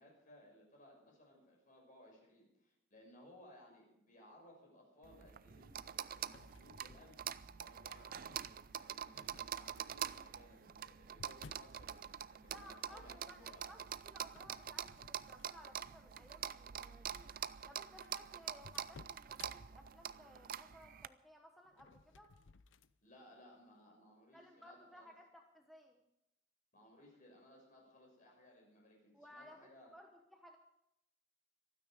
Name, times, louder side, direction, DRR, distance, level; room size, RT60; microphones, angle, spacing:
voice 1, 0.0-7.2 7.6-13.6 23.0-25.1 26.7-29.9, left 1 dB, 45° left, 0 dB, 6.1 m, -62 dB
sound 1, 5.0-21.1, right 9 dB, 45° right, 0.4 m, -46 dB
sound 2, 6.2-7.7 8.3-8.8 9.9-11.8 14.3-15.8 16.3-16.5 17.3-17.4 17.6-17.7 18.0-19.5 21.6-22.9, left 4 dB, 75° left, 0.6 m, -60 dB
voice 2, 12.5-17.3 17.6-22.3 24.3-26.0 29.1-30.6, equal, ahead, 2 dB, 1.0 m, -59 dB
25.0 x 9.6 x 5.0 m, 0.84 s
head